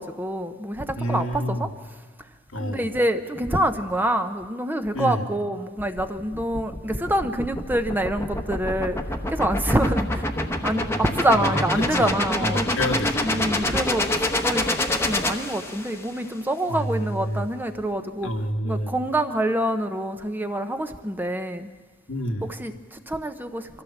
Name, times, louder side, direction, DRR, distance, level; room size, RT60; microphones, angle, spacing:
voice 1, 0.0-1.7 2.6-9.0 9.3-10.2 10.6-12.6 13.2-18.3 18.6-21.7 22.4-23.8, right 1 dB, 10° right, 8 dB, 0.8 m, -26 dB
voice 2, 1.0-1.7 2.5-2.9 4.9-5.3 11.3-11.6 12.0-12.1 12.4-13.6 16.7-17.5 18.2-18.9 22.1-22.5, equal, 85° left, 3 dB, 1.6 m, -28 dB
sound 1, 5.8-16.1, left 1 dB, 15° left, 1.1 m, -27 dB
23.5 x 15.0 x 7.3 m, 1.4 s
head